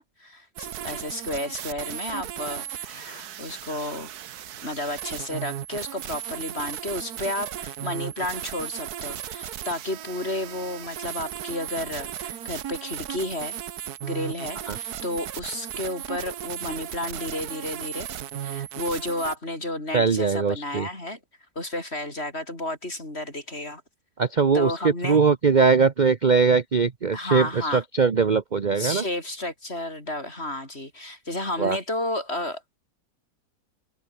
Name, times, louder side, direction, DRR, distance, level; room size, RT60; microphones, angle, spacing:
voice 1, 0.0-4.1 4.6-13.5 14.0-18.1 18.4-21.2 21.5-23.8 24.5-25.2 27.1-27.8 28.8-32.8, left 1 dB, 40° left, 6.8 m, -32 dB
sound 1, 0.6-19.4, right 10 dB, 75° right, 1.5 m, -36 dB
voice 2, 19.9-20.9 24.2-29.0 31.6-31.8, right 5 dB, 35° right, 0.9 m, -21 dB
open air
omnidirectional pair, 1.7 m